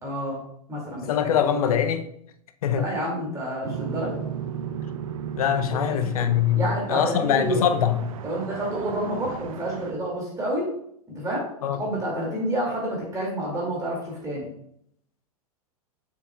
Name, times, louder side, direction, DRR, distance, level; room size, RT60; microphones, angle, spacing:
voice 1, 0.0-0.4 0.7-1.6 2.7-4.2 5.9-6.3 6.5-7.7 8.2-10.7 11.2-11.5 11.7-14.5, right 1 dB, 15° right, 2.5 m, -29 dB
voice 2, 1.1-2.1 2.6-2.8 5.4-8.0 11.6-11.8, left 9 dB, 70° left, 0.7 m, -23 dB
sound 1, 3.6-9.9, right 8 dB, 65° right, 0.7 m, -35 dB
7.0 x 6.6 x 2.4 m
hypercardioid pair, 105°, 19 cm